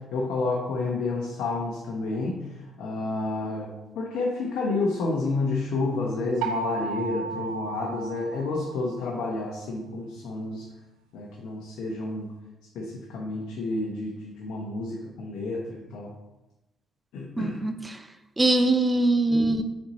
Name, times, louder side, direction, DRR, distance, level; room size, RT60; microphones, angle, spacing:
voice 1, 0.0-2.3 2.8-10.7 11.1-12.3 12.7-16.1 17.1-17.6, left 3 dB, 80° left, -2 dB, 0.9 m, -30 dB
sound 1, 6.4-9.2, right 5 dB, 90° right, 0.5 m, -34 dB
voice 2, 17.4-18.0 18.4-19.6, right 2 dB, 20° right, 8 dB, 0.6 m, -22 dB
4.5 x 4.3 x 5.2 m, 0.99 s
supercardioid pair, 65°, 0 cm